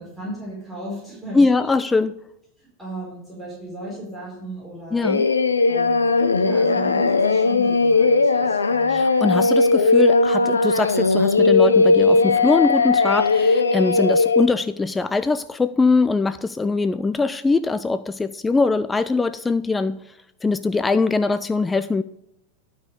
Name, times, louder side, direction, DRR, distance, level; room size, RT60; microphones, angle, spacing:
voice 1, 0.0-1.7 2.6-5.1 5.7-9.0, right 1 dB, 5° right, -7 dB, 4.6 m, -36 dB
voice 2, 1.3-2.1 4.9-5.3 8.9-20.0 20.4-22.0, left 3 dB, 10° left, 13 dB, 0.4 m, -22 dB
Singing, 5.0-14.5, left 3 dB, 75° left, 0.7 m, -18 dB
12.0 x 5.4 x 6.6 m, 0.80 s
figure-of-eight pair, 90°, 0 cm